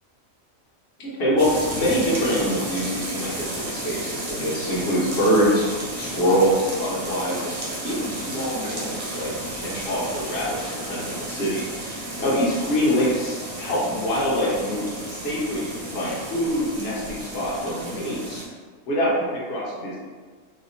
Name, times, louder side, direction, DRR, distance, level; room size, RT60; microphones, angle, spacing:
voice 1, 1.0-5.7 6.0-7.5 7.8-9.3 9.6-10.6 10.9-11.6 12.2-18.4 18.9-20.0, equal, 50° left, -7 dB, 1.0 m, -24 dB
sound 1, 1.4-18.5, right 1 dB, 45° right, 0.4 m, -33 dB
3.2 x 2.7 x 2.7 m, 1.5 s
omnidirectional pair, 1.5 m